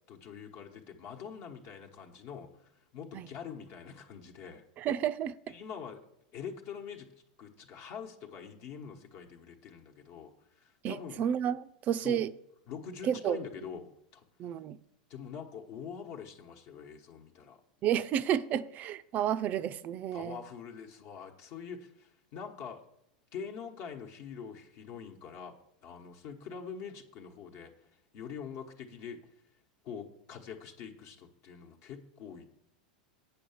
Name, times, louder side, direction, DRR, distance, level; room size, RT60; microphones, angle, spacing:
voice 1, 0.1-4.6 5.5-6.0 6.3-7.1 7.4-11.2 11.9-12.2 12.7-14.6 15.1-17.6 20.1-22.8 23.3-25.5 25.8-29.2 29.8-32.4, left 7 dB, 50° left, 1.1 m, -44 dB
voice 2, 4.8-5.5 10.8-12.3 13.0-13.4 14.4-14.8 17.8-20.4, right 9 dB, 35° right, 0.4 m, -31 dB
8.5 x 5.7 x 7.0 m
supercardioid pair, 135°, 5 cm